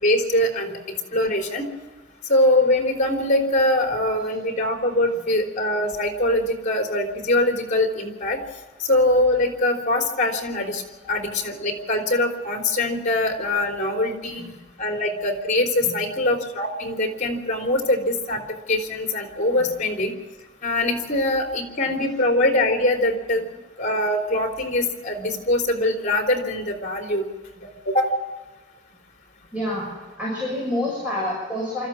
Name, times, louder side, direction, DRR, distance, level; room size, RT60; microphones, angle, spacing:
voice 1, 0.0-1.6 2.3-8.4 8.9-10.8 11.1-14.4 14.8-18.4 18.7-20.1 20.6-23.4 23.8-27.2 27.8-28.2, left 1 dB, 45° left, 3 dB, 3.4 m, -22 dB
voice 2, 29.5-29.9 30.2-31.9, left 1 dB, 10° right, -6 dB, 6.6 m, -28 dB
25.0 x 14.0 x 7.4 m, 1.3 s
head